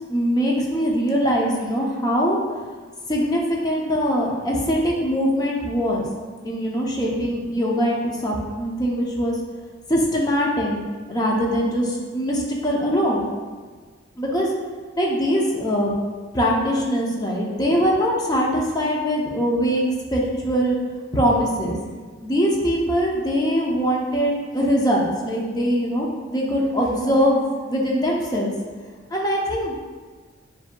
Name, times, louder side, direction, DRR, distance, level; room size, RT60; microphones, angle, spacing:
voice 1, 0.1-2.4 3.1-6.1 6.4-9.3 9.9-10.8 11.1-13.3 14.2-14.5 15.0-15.9 16.3-19.8 20.1-20.8 21.1-21.8 22.2-28.5 29.1-29.7, equal, 20° left, -3 dB, 0.6 m, -22 dB
7.2 x 2.7 x 2.2 m, 1.5 s
head